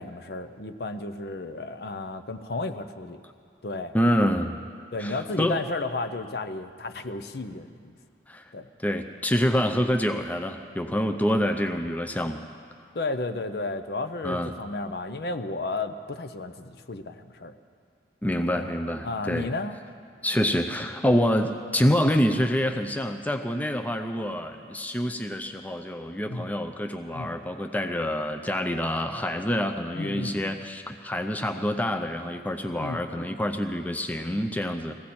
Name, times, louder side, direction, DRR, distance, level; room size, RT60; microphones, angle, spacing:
voice 1, 0.0-3.2 3.6-3.9 4.9-7.9 8.5-8.7 12.9-17.5 18.5-18.7 19.0-19.8 26.3-26.5 27.1-27.3 29.9-30.4 32.8-33.0, left 2 dB, 60° left, 9 dB, 0.7 m, -33 dB
voice 2, 3.9-4.6 5.0-5.6 8.3-8.5 8.8-12.4 14.2-14.6 18.2-19.5 20.2-34.9, equal, 10° left, 5 dB, 0.5 m, -26 dB
20.5 x 16.0 x 4.3 m, 2.2 s
head